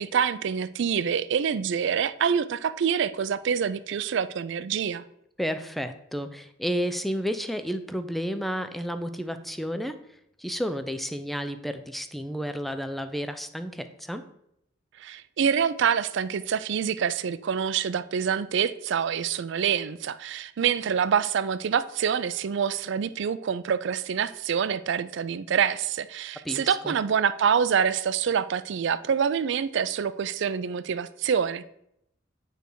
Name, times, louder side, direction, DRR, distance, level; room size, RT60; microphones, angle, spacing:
voice 1, 0.0-5.0 15.0-31.7, right 7 dB, 65° right, 0.4 m, -26 dB
voice 2, 5.4-10.0 10.4-14.3 26.4-26.9, equal, ahead, 0.4 m, -31 dB
9.2 x 3.3 x 4.6 m
head